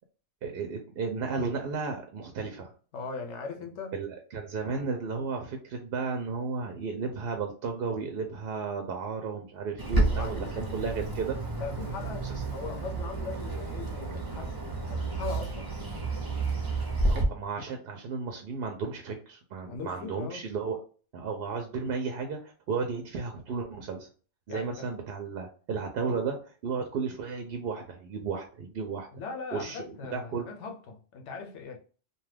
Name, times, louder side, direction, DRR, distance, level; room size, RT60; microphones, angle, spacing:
voice 1, 0.4-2.7 3.9-11.4 17.0-20.8 21.1-24.1 24.5-26.4 26.6-29.1 29.5-30.5, right 5 dB, 65° right, 0.7 m, -34 dB
voice 2, 2.9-4.0 10.0-10.8 11.6-14.6 14.9-15.7 19.7-20.4 24.5-24.9 29.1-31.8, left 4 dB, 75° left, 1.0 m, -40 dB
Bird, 9.8-17.2, right 2 dB, 25° right, 0.5 m, -31 dB
2.7 x 2.3 x 3.2 m
omnidirectional pair, 1.2 m